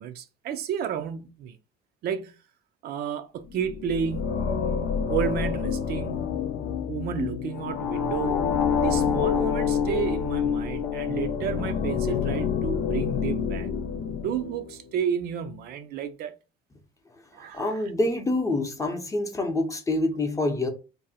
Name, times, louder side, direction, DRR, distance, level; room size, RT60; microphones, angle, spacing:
voice 1, 0.0-1.6 2.0-2.4 2.8-4.3 5.1-6.2 6.9-8.4 8.8-13.7 14.1-16.3 17.3-17.8, right 8 dB, 70° right, 0.5 m, -31 dB
sound 1, 3.5-14.7, left 7 dB, 85° left, 0.5 m, -27 dB
voice 2, 17.5-20.7, left 2 dB, 20° left, 0.6 m, -26 dB
2.6 x 2.1 x 4.0 m
cardioid pair, 110°, 17 cm